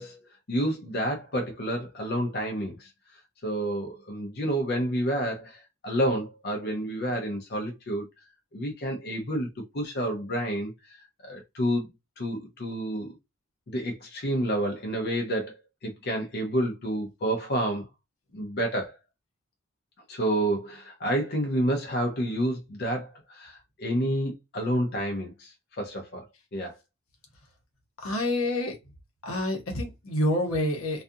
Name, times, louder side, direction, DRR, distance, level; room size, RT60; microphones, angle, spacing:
voice 1, 0.0-2.9 3.4-8.1 8.5-9.5 9.7-11.0 11.2-11.9 12.2-13.2 13.7-15.5 15.8-17.9 18.3-19.0 20.1-26.3 26.5-26.8, right 1 dB, 50° left, 0.6 m, -29 dB
voice 2, 28.0-28.8 29.2-31.0, left 1 dB, 85° left, 0.9 m, -27 dB
2.4 x 2.4 x 2.6 m
head